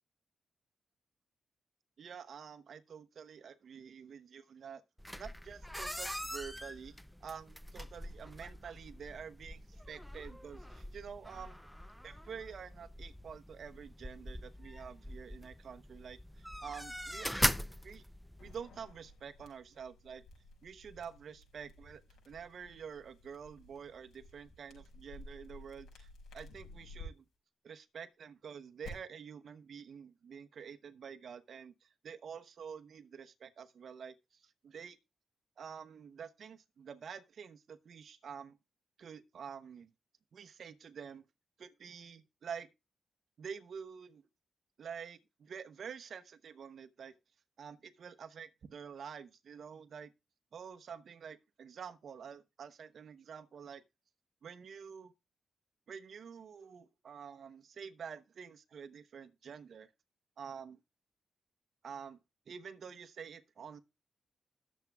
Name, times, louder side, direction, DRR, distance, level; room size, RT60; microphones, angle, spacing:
voice 1, 2.0-4.8 5.1-11.6 12.0-17.3 17.8-18.0 18.4-20.2 20.6-27.2 27.6-35.0 35.6-38.6 39.0-39.9 40.3-41.3 41.6-42.7 43.4-44.2 44.8-47.2 47.6-50.1 50.5-53.8 54.4-55.1 55.9-59.9 60.4-60.8 61.8-62.2 62.5-63.8, right 7 dB, 70° right, 0.9 m, -48 dB
sound 1, 5.0-18.6, equal, ahead, 0.5 m, -41 dB
sound 2, 18.4-27.1 28.8-28.9, left 3 dB, 85° left, 5.6 m, -55 dB
20.0 x 7.3 x 2.3 m
cardioid pair, 65°, 0 cm